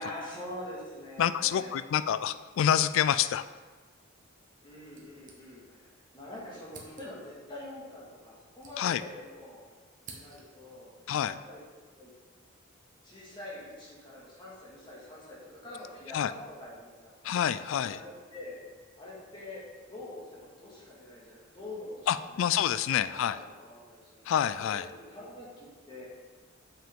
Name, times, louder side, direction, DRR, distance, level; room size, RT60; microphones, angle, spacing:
voice 1, 0.0-1.7 4.6-9.6 10.1-10.9 11.5-11.6 12.0-12.1 13.0-17.1 17.8-18.6 19.0-19.6 19.9-24.1 24.6-26.1, left 1 dB, 25° left, -6 dB, 2.1 m, -45 dB
voice 2, 1.2-3.4 8.8-9.0 11.1-11.4 16.1-16.3 17.2-18.0 22.1-23.4 24.3-24.9, left 9 dB, 65° left, 14 dB, 0.3 m, -27 dB
sound 1, 4.9-5.9 6.2-6.3 6.7-7.4 8.2-9.5 9.7-10.7, right 4 dB, 40° right, 1.0 m, -52 dB
7.3 x 5.8 x 3.7 m, 1.4 s
head